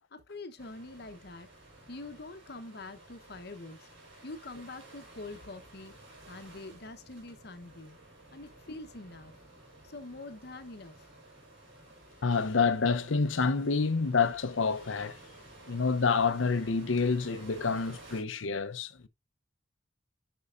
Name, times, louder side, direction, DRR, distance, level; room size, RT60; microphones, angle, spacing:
voice 1, 0.1-1.5 1.9-3.9 4.2-6.0 6.3-8.0 8.3-9.3 9.8-11.1, left 2 dB, 55° left, 0.9 m, -45 dB
sound 1, 0.6-18.2, right 1 dB, 70° right, 4.5 m, -53 dB
voice 2, 12.2-15.2 15.7-19.1, left 4 dB, 85° left, 0.7 m, -28 dB
9.9 x 5.4 x 2.5 m
head